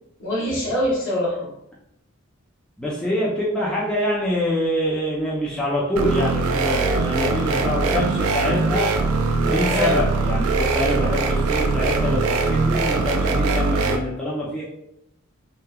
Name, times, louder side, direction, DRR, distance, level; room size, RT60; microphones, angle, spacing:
voice 1, 0.2-1.5 9.7-9.9, left 1 dB, 65° left, -5 dB, 0.9 m, -24 dB
voice 2, 2.8-8.9 9.4-14.6, left 1 dB, 5° left, -7 dB, 0.3 m, -25 dB
sound 1, 6.0-14.0, right 3 dB, 80° right, 0.3 m, -21 dB
2.7 x 2.0 x 2.2 m, 0.81 s
head